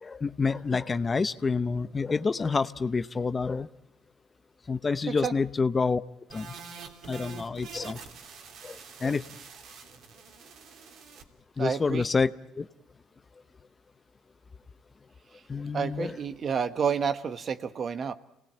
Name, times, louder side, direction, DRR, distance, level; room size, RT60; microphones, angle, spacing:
voice 1, 0.0-3.7 4.7-6.0 6.3-6.5 7.1-8.0 8.6-9.3 11.6-12.7 15.5-16.1, left 4 dB, 30° left, 14 dB, 0.8 m, -28 dB
sound 1, 6.3-11.2, right 6 dB, 65° right, 3.1 m, -46 dB
voice 2, 11.6-12.0 15.7-18.1, right 6 dB, 45° right, 11 dB, 1.3 m, -30 dB
27.0 x 18.5 x 8.9 m, 0.90 s
supercardioid pair, 80°, 0 cm